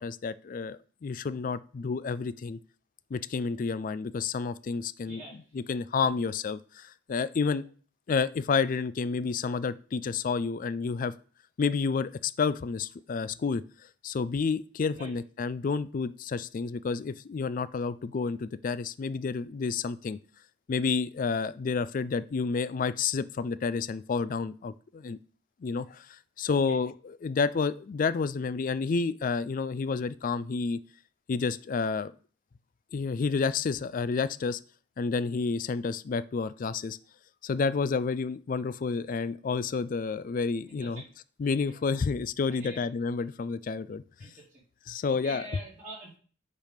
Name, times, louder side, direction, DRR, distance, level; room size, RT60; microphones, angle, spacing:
voice 1, 0.0-2.6 3.1-5.2 5.5-7.6 8.1-11.1 11.6-13.6 14.0-20.2 20.7-25.2 25.6-26.9 27.2-30.8 31.3-32.1 32.9-34.6 35.0-37.0 37.4-41.0 41.4-44.0 44.9-45.4, left 5 dB, 40° left, 15 dB, 0.3 m, -30 dB
voice 2, 5.1-5.6 7.3-7.7 14.9-15.1 26.5-26.8 40.7-41.1 42.5-42.8 44.2-44.6 45.1-46.2, right 1 dB, 35° right, -5 dB, 2.2 m, -46 dB
8.9 x 3.5 x 5.0 m, 0.42 s
head